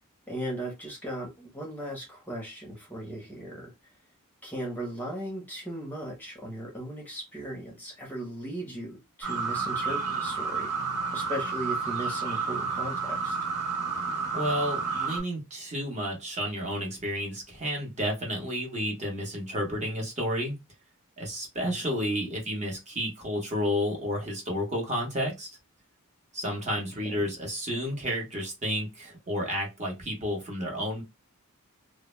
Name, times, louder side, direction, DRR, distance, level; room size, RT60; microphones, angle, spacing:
voice 1, 0.3-3.7 4.4-10.7 11.1-13.4 21.6-21.8 27.1-27.2, right 1 dB, 10° left, -1 dB, 0.7 m, -37 dB
sound 1, 9.2-15.2, right 5 dB, 85° right, 1.2 m, -30 dB
voice 2, 14.3-20.6 21.2-25.5 26.3-31.0, equal, 30° right, 0 dB, 0.8 m, -31 dB
2.0 x 2.0 x 3.0 m, 0.23 s
head